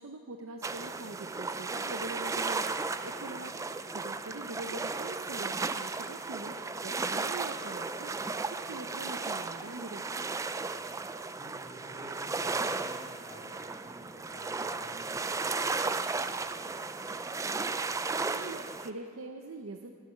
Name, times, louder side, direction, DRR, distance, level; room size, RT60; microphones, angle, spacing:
voice 1, 0.0-3.5 3.9-6.6 6.8-10.0 18.2-19.9, right 2 dB, 85° right, 4 dB, 0.7 m, -43 dB
sound 1, 0.6-18.9, right 3 dB, 15° right, 0.3 m, -35 dB
voice 2, 10.6-11.0 11.4-17.0, equal, 15° left, -6 dB, 3.6 m, -52 dB
14.5 x 12.0 x 5.8 m, 2.1 s
head